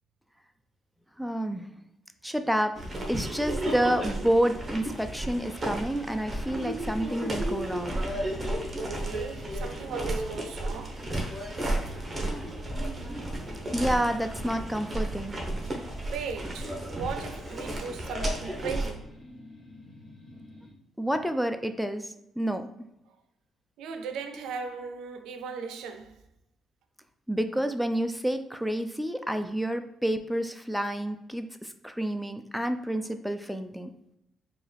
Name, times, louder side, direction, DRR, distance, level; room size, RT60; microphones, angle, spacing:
voice 1, 1.2-1.7 2.2-2.8 3.1-8.0 13.7-15.4 21.0-22.7 27.3-33.9, right 1 dB, ahead, 0.3 m, -29 dB
sound 1, 2.8-18.9, right 1 dB, 25° right, 1.0 m, -33 dB
sound 2, 5.3-20.7, left 1 dB, 50° left, 0.9 m, -50 dB
voice 2, 8.8-11.0 11.7-11.9 15.6-15.8 16.1-19.2 23.8-26.1, right 5 dB, 85° right, 0.4 m, -38 dB
4.5 x 2.3 x 3.3 m
cardioid pair, 90°, 0 cm